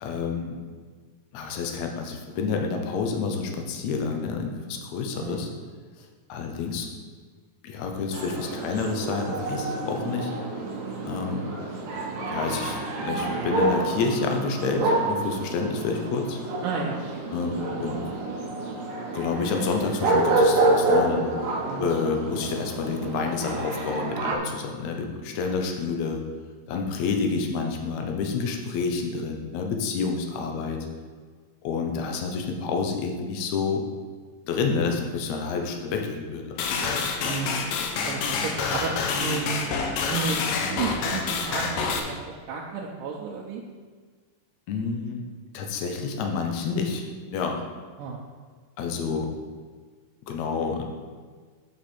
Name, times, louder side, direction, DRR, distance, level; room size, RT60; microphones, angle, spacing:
voice 1, 0.0-0.6 1.3-5.5 6.3-6.9 7.6-10.3 11.0-11.5 12.2-16.4 17.3-18.0 19.1-21.3 21.8-26.2 26.7-30.9 31.6-33.8 34.5-37.4 44.7-45.2 45.5-47.7 48.8-49.3 50.3-50.8, left 4 dB, 70° left, 3 dB, 1.9 m, -29 dB
voice 2, 5.1-5.5 16.6-17.2 17.6-17.9 21.7-21.9 27.3-27.5 37.3-37.6 38.1-39.6 40.1-43.6 48.0-48.2, right 5 dB, 80° right, -3 dB, 2.3 m, -32 dB
sound 1, 8.1-24.4, right 2 dB, 65° right, 2.0 m, -28 dB
sound 2, 36.6-42.0, left 5 dB, 85° left, 2.4 m, -27 dB
8.0 x 6.1 x 4.4 m, 1.5 s
omnidirectional pair, 3.9 m